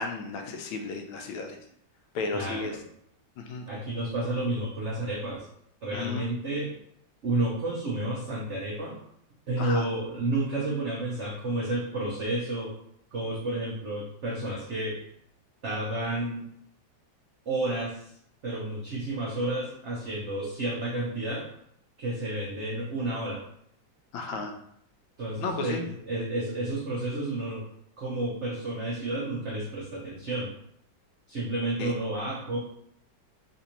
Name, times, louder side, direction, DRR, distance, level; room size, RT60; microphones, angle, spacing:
voice 1, 0.0-1.6 2.1-2.8 3.4-3.7 5.9-6.3 9.6-9.9 24.1-24.5 25.4-25.8 31.8-31.9, left 4 dB, 90° left, 4 dB, 1.4 m, -33 dB
voice 2, 2.3-2.8 3.7-5.5 5.8-6.8 7.2-9.0 9.5-12.7 13.1-15.0 15.6-16.4 17.5-18.0 18.4-21.5 22.0-23.4 25.2-27.6 28.0-30.5 31.3-32.6, right 2 dB, 85° right, -4 dB, 0.6 m, -31 dB
3.8 x 2.5 x 2.9 m, 0.69 s
omnidirectional pair, 2.1 m